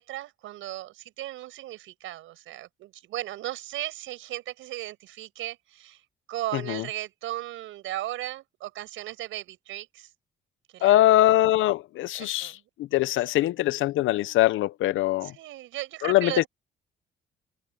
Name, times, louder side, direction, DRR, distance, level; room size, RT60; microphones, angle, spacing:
voice 1, 0.0-6.0 6.3-10.1 10.7-11.3 12.2-12.6 13.1-13.2 15.2-16.5, right 15 dB, 90° right, 6.4 m, -36 dB
voice 2, 6.5-6.8 10.8-15.3 16.0-16.4, left 15 dB, 85° left, 0.7 m, -22 dB
cardioid pair, 90°, 20 cm